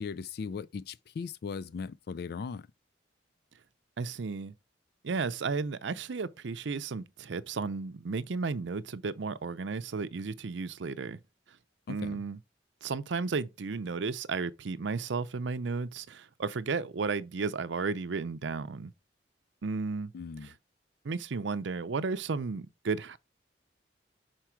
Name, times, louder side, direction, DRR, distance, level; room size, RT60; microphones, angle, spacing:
voice 1, 0.0-2.7 11.9-12.2 20.1-20.5, left 5 dB, 60° left, 0.3 m, -38 dB
voice 2, 4.0-4.5 5.0-11.2 11.9-12.4 12.8-18.9 19.6-20.1 20.4-20.5 21.0-23.2, right 4 dB, 75° right, 0.6 m, -33 dB
6.0 x 4.5 x 4.5 m
head